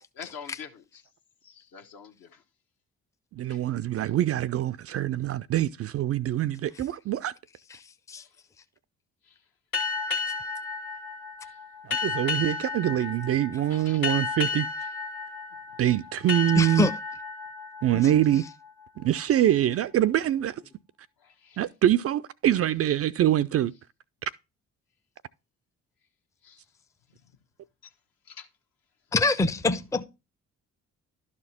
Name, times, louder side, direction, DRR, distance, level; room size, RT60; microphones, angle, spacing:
voice 1, 0.1-1.0 1.4-2.4 3.5-3.6 8.2-8.3 9.2-9.4 11.4-11.6 12.0-12.6 13.7-14.1 21.2-21.6 26.4-26.6 27.8-27.9 28.3-28.5, left 7 dB, 60° left, 1.2 m, -46 dB
voice 2, 3.3-7.3 11.8-14.7 15.8-16.9 17.8-18.5 19.0-20.6 21.6-23.7, right 12 dB, 40° right, 0.4 m, -24 dB
sound 1, 9.7-19.0, left 4 dB, 85° left, 1.4 m, -33 dB
voice 3, 16.6-16.9 29.1-30.0, left 3 dB, 10° left, 0.6 m, -24 dB
12.0 x 4.3 x 4.2 m
figure-of-eight pair, 40°, 40 cm